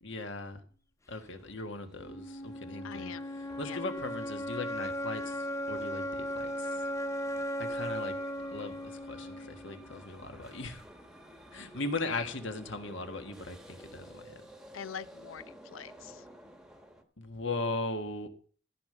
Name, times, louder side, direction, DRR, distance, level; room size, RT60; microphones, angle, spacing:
voice 1, 0.0-0.6 1.1-3.1 3.6-6.8 7.6-8.1 8.5-10.8 11.5-14.4 17.2-18.3, left 2 dB, 65° left, 1.6 m, -38 dB
sound 1, 1.2-17.0, equal, 5° right, 1.2 m, -54 dB
sound 2, 2.0-10.0, equal, 15° left, 0.5 m, -37 dB
voice 2, 2.8-3.3 3.6-3.8 12.0-12.3 14.7-16.2, left 8 dB, 80° left, 0.6 m, -43 dB
14.5 x 5.3 x 6.8 m
head